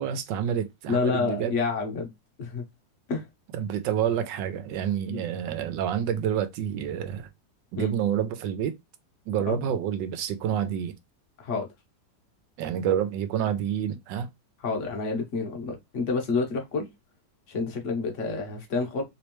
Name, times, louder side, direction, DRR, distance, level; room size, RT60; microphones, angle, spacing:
voice 1, 0.0-1.5 3.5-7.3 7.7-8.7 9.3-10.9 12.6-14.3, right 9 dB, 85° right, 1.3 m, -28 dB
voice 2, 0.9-2.1 2.4-2.6 3.1-3.2 5.1-5.3 7.8-7.9 9.5-9.6 11.4-11.7 14.6-16.9 17.5-19.0, left 4 dB, 50° left, 1.2 m, -28 dB
3.4 x 3.1 x 3.0 m
omnidirectional pair, 2.0 m